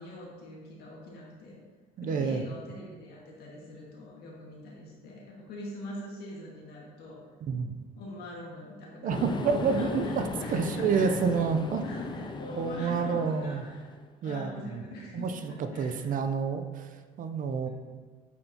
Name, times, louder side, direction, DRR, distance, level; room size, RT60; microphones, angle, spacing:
voice 1, 0.0-1.6 2.0-7.2 8.0-11.4 11.8-13.8 14.2-16.1 17.6-17.7, left 1 dB, 70° left, -3 dB, 1.8 m, -43 dB
voice 2, 2.0-2.5 7.5-7.7 9.0-11.8 12.6-13.6 14.2-14.8 15.1-17.7, right 5 dB, 55° right, 8 dB, 0.6 m, -29 dB
sound 1, 9.1-14.0, left 3 dB, 25° left, 0.5 m, -37 dB
8.3 x 4.5 x 2.8 m, 1.5 s
cardioid pair, 110°, 17 cm